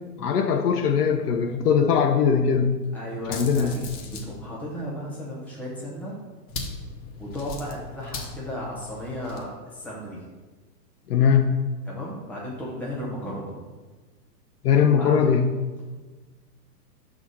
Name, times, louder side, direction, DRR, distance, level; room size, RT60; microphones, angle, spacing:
voice 1, 0.2-2.8 3.3-3.8 11.1-11.6 14.6-15.5, left 7 dB, 65° left, 4 dB, 0.8 m, -21 dB
voice 2, 2.9-6.2 7.2-10.2 11.8-13.6 14.9-15.4, equal, 5° left, -5 dB, 0.5 m, -35 dB
sound 1, 3.2-4.4 6.5-9.5, left 4 dB, 40° left, 1.1 m, -37 dB
5.8 x 4.0 x 6.2 m, 1.3 s
hypercardioid pair, 155°, 49 cm